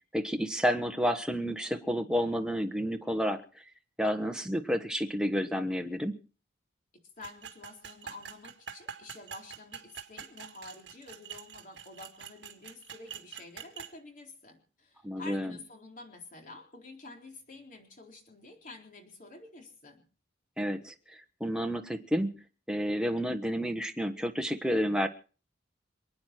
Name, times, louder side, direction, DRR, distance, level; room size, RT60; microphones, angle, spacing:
voice 1, 0.1-3.6 4.0-6.2 15.0-15.6 20.6-25.1, equal, 5° right, 4 dB, 1.3 m, -30 dB
voice 2, 7.2-20.0, left 2 dB, 45° left, 2 dB, 3.9 m, -49 dB
sound 1, 7.2-13.9, right 7 dB, 60° right, 1.9 m, -45 dB
28.0 x 9.5 x 4.4 m, 0.37 s
head